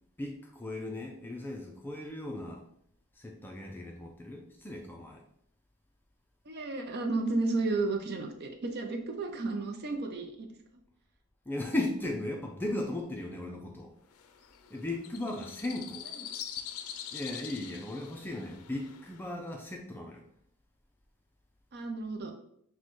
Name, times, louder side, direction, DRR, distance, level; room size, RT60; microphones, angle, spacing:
voice 1, 0.2-2.7 3.2-5.2 11.5-13.9 14.7-16.0 17.1-20.2, left 1 dB, 10° left, 1 dB, 0.4 m, -37 dB
voice 2, 6.5-10.5 21.7-22.3, right 3 dB, 50° right, 4 dB, 0.5 m, -32 dB
sound 1, 14.1-19.3, left 9 dB, 75° left, 0.4 m, -44 dB
6.2 x 2.2 x 3.0 m, 0.70 s
head